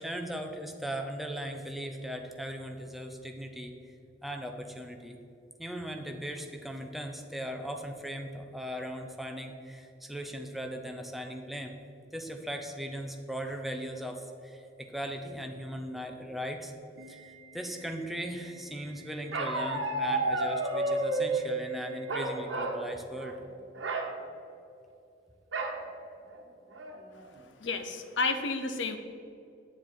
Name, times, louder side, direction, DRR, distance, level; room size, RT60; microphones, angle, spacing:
voice 1, 0.0-3.7 4.2-5.2 5.6-11.7 12.1-16.7 17.1-23.4, equal, ahead, 3 dB, 0.7 m, -38 dB
Organ, 17.0-23.0, right 3 dB, 65° right, 1.3 m, -54 dB
Bark, 19.3-21.4 22.1-22.8 23.1-23.4 23.7-24.1 25.5-25.8 26.3-26.4 26.7-27.2, right 2 dB, 90° right, 1.1 m, -31 dB
voice 2, 27.6-29.0, left 3 dB, 75° left, 7 dB, 0.8 m, -31 dB
9.6 x 7.3 x 4.5 m, 2.6 s
head